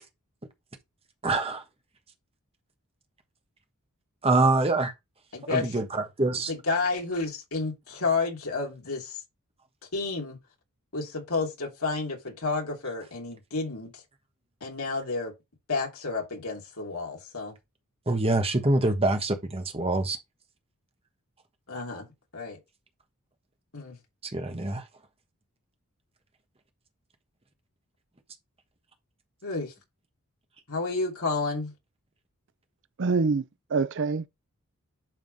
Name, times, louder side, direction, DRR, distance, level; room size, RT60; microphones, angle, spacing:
voice 1, 1.2-1.6 4.2-4.9 5.5-6.5 18.1-20.2 24.3-24.8, right 2 dB, 25° right, 1.3 m, -25 dB
voice 2, 5.3-5.7 6.5-9.2 9.9-10.4 10.9-14.0 14.6-15.3 15.7-17.5 21.7-22.1 22.3-22.6 23.7-24.0 29.4-29.7 30.7-31.7, left 3 dB, 70° left, 3.0 m, -30 dB
voice 3, 33.0-34.3, right 4 dB, 55° right, 0.5 m, -26 dB
11.0 x 3.7 x 4.1 m
head